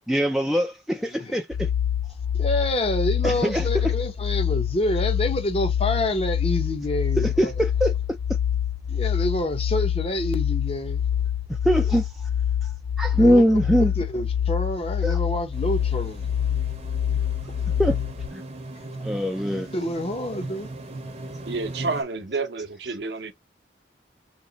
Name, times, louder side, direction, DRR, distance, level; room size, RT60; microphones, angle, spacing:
voice 1, 0.1-1.7 3.2-3.7 7.2-7.9 11.6-12.1 12.6-12.7 13.0-13.9 15.0-15.2 17.8-18.0 18.3-18.4 19.0-19.7, equal, ahead, 0.3 m, -22 dB
sound 1, 1.5-18.3, left 9 dB, 75° left, 0.4 m, -26 dB
voice 2, 2.3-7.5 8.9-11.1 13.2-13.4 14.0-16.3 19.7-20.7, left 1 dB, 35° left, 0.7 m, -27 dB
sound 2, 15.5-22.0, right 2 dB, 35° right, 0.7 m, -38 dB
voice 3, 21.5-23.3, right 3 dB, 70° right, 0.7 m, -29 dB
3.1 x 2.9 x 3.8 m
head